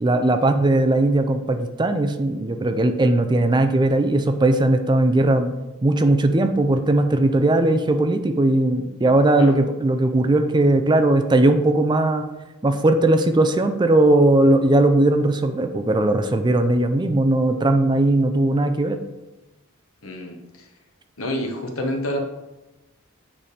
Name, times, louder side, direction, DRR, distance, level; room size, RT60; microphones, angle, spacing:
voice 1, 0.0-5.5 5.8-12.3 12.6-19.0, right 2 dB, 20° right, 7 dB, 0.4 m, -18 dB
voice 2, 20.0-20.7 21.2-22.2, left 1 dB, 75° left, 4 dB, 1.0 m, -28 dB
8.7 x 3.4 x 4.2 m, 1.0 s
head